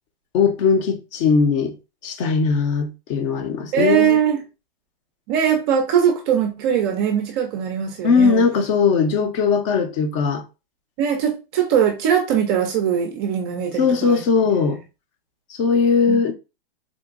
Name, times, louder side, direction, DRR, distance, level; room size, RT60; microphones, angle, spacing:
voice 1, 0.3-1.7 2.0-4.2 8.0-10.4 13.8-14.8 15.5-16.3, left 5 dB, 35° left, 0.6 m, -19 dB
voice 2, 3.7-4.4 5.3-8.4 11.0-14.2 14.6-14.8 16.1-16.2, right 8 dB, 25° right, 0.4 m, -21 dB
3.8 x 2.4 x 2.4 m
hypercardioid pair, 135°, 30 cm